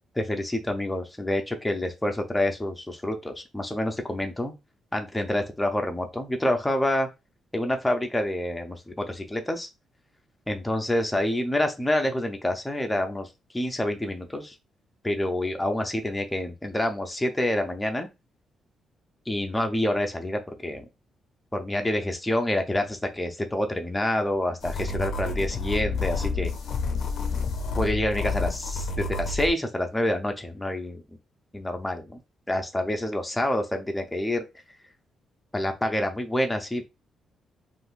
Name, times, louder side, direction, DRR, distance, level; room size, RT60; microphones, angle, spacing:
voice 1, 0.2-4.5 4.9-7.1 7.5-9.7 10.5-13.3 13.5-14.5 15.0-18.1 19.3-20.8 21.5-26.5 27.7-31.0 31.5-32.2 32.5-34.5 35.5-36.8, left 1 dB, 10° left, 4 dB, 0.5 m, -27 dB
sound 1, 24.6-29.5, left 4 dB, 60° left, 0.5 m, -29 dB
3.5 x 2.5 x 2.4 m, 0.24 s
cardioid pair, 170°, 0 cm